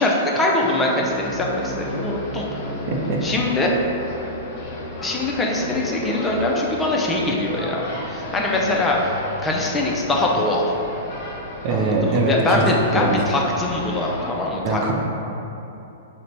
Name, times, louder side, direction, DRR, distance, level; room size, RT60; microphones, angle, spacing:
voice 1, 0.0-2.5 3.2-3.7 5.0-7.8 8.1-9.1 9.4-10.7 11.7-14.9, left 2 dB, 15° left, -2 dB, 0.4 m, -22 dB
sound 1, 0.6-14.3, left 1 dB, 50° left, 0.8 m, -33 dB
voice 2, 2.9-3.2 11.6-13.1 14.6-14.9, right 2 dB, 45° right, -1 dB, 0.6 m, -22 dB
3.8 x 2.1 x 4.2 m, 2.9 s
hypercardioid pair, 110°, 0 cm